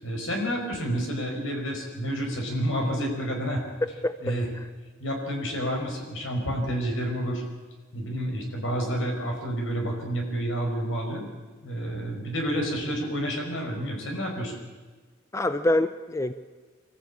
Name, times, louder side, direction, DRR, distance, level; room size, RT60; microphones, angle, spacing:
voice 1, 0.0-3.6 4.2-4.5 5.0-7.4 7.9-11.2 11.6-14.6, equal, 75° left, 2 dB, 5.3 m, -29 dB
voice 2, 4.0-4.3 15.3-16.3, left 1 dB, 15° left, 11 dB, 0.6 m, -25 dB
24.0 x 14.5 x 8.6 m, 1.4 s
head